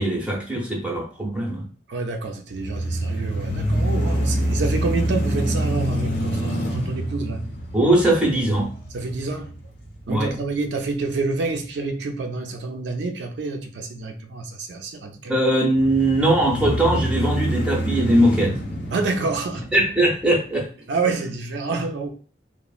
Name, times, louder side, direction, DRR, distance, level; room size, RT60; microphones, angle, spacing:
voice 1, 0.0-1.6 7.7-8.7 10.1-10.3 15.3-18.5 19.7-20.7, right 1 dB, 5° right, 0.7 m, -20 dB
voice 2, 1.9-7.4 8.9-9.5 10.1-15.3 18.9-19.7 20.9-22.1, right 3 dB, 70° right, 0.4 m, -28 dB
sound 1, 2.5-10.6 11.1-11.2 15.8-20.2, right 1 dB, 75° left, 0.9 m, -26 dB
3.0 x 2.0 x 2.4 m
head